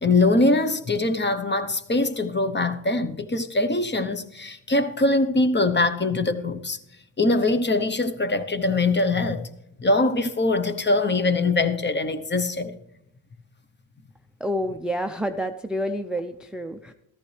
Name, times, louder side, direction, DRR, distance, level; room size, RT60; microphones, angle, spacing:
voice 1, 0.0-6.8 7.2-9.5 9.8-12.7, left 2 dB, 25° left, 0.9 m, -22 dB
voice 2, 14.4-16.9, equal, ahead, 0.5 m, -28 dB
14.0 x 13.5 x 3.3 m
cardioid pair, 105°, 45 cm